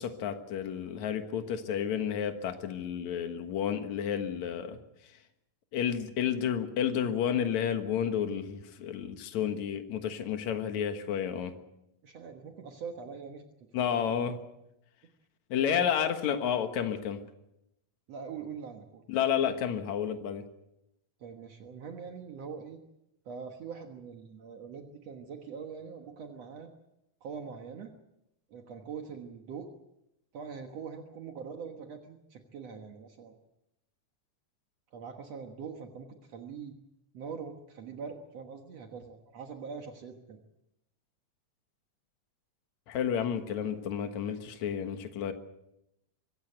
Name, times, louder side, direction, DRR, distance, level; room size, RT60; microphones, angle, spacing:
voice 1, 0.0-4.8 5.7-11.5 13.7-14.4 15.5-17.2 19.1-20.5 42.9-45.3, left 8 dB, 70° left, 7 dB, 2.7 m, -31 dB
voice 2, 12.0-13.4 13.8-14.3 15.6-16.2 18.1-19.0 21.2-22.8 23.3-26.7 27.2-27.9 28.5-29.7 30.3-33.4 34.9-36.7 37.1-40.4, right 6 dB, 60° right, 4 dB, 2.4 m, -43 dB
24.5 x 15.5 x 8.0 m, 0.85 s
omnidirectional pair, 3.5 m